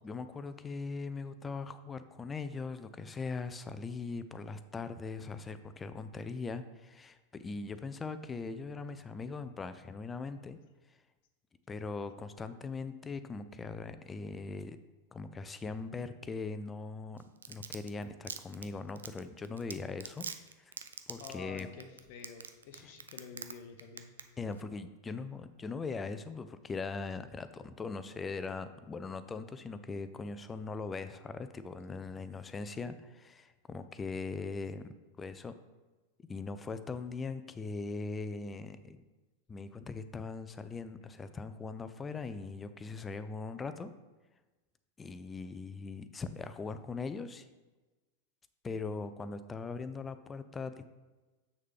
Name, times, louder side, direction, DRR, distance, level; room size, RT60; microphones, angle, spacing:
voice 1, 0.0-10.6 11.7-14.8 15.1-20.3 20.6-20.7 21.1-21.7 24.4-35.5 36.3-39.0 39.5-43.9 45.0-47.5 48.6-50.9, left 4 dB, 15° left, 11 dB, 0.5 m, -40 dB
Domestic sounds home sounds, 17.2-23.5 23.8-24.2 24.5-24.6, right 6 dB, 70° right, 0.4 m, -42 dB
voice 2, 21.2-24.1, left 5 dB, 50° left, 6 dB, 0.8 m, -49 dB
7.3 x 6.4 x 3.5 m, 1.2 s
figure-of-eight pair, 90°, 0 cm